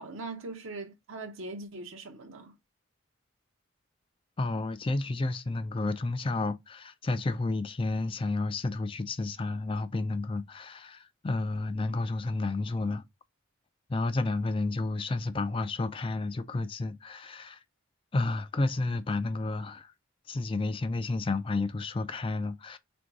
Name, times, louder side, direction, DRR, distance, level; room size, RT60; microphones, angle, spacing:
voice 1, 0.0-2.5, right 3 dB, 65° right, 0.6 m, -41 dB
voice 2, 4.4-13.0 13.9-17.6 18.1-19.9 20.3-22.8, left 2 dB, 25° left, 0.3 m, -31 dB
3.7 x 2.6 x 4.6 m
head